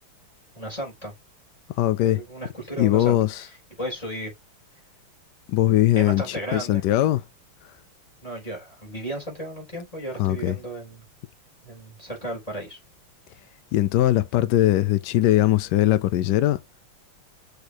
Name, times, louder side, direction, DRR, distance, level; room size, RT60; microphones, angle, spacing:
voice 1, 0.5-1.1 2.0-3.5 3.8-4.3 6.0-6.8 8.2-11.1 11.6-12.8, right 1 dB, 15° left, 3.8 m, -34 dB
voice 2, 1.7-2.2 2.8-3.4 5.5-7.2 10.2-10.6 13.7-16.6, left 14 dB, 80° left, 0.9 m, -21 dB
6.4 x 5.0 x 2.9 m
omnidirectional pair, 2.4 m